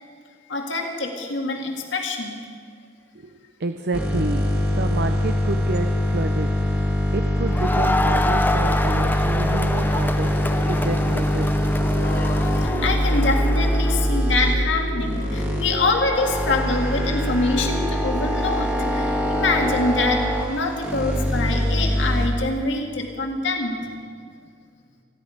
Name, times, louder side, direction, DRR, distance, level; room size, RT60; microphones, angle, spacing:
voice 1, 0.5-2.4 12.0-23.9, left 2 dB, 70° left, 2 dB, 2.0 m, -25 dB
voice 2, 3.6-6.5 7.1-11.5, right 3 dB, 55° right, 8 dB, 0.6 m, -29 dB
sound 1, 3.9-22.3, equal, 10° right, 1.6 m, -23 dB
Crowd, 7.5-14.1, left 2 dB, 10° left, 0.6 m, -27 dB
sound 2, 10.1-19.7, right 1 dB, 80° right, 4.8 m, -35 dB
27.0 x 10.5 x 5.1 m, 2.2 s
head